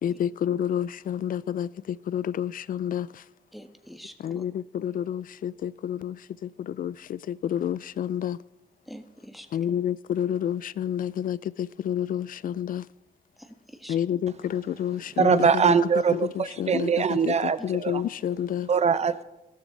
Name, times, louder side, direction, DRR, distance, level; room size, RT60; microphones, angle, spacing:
voice 1, 0.0-3.3 4.2-8.4 9.5-12.9 13.9-15.8 16.1-18.7, left 9 dB, 65° left, 0.4 m, -29 dB
voice 2, 3.5-4.4 8.9-9.5 13.4-14.0, equal, ahead, 1.7 m, -45 dB
voice 3, 15.2-18.0 18.7-19.2, right 6 dB, 45° right, 0.9 m, -22 dB
17.5 x 13.0 x 4.0 m
cardioid pair, 75°, 15 cm